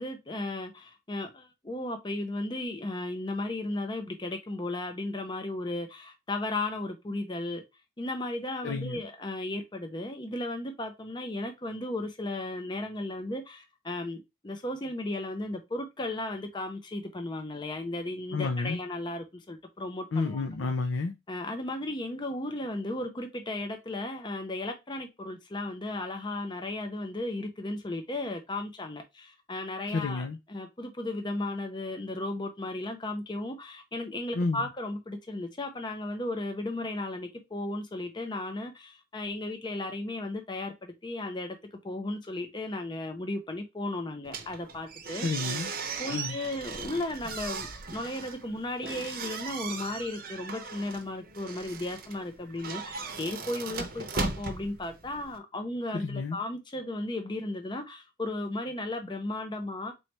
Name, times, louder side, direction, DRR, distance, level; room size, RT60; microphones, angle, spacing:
voice 1, 0.0-7.6 8.0-20.7 21.3-45.3 46.0-59.9, left 2 dB, 25° left, 0.5 m, -35 dB
voice 2, 8.6-9.0 18.3-18.8 20.1-21.1 29.9-30.4 34.3-34.6 45.2-45.7 46.1-46.4 55.9-56.4, left 3 dB, 75° left, 0.6 m, -30 dB
sound 1, 44.2-55.4, right 4 dB, 45° right, 0.7 m, -38 dB
4.1 x 3.1 x 3.1 m
head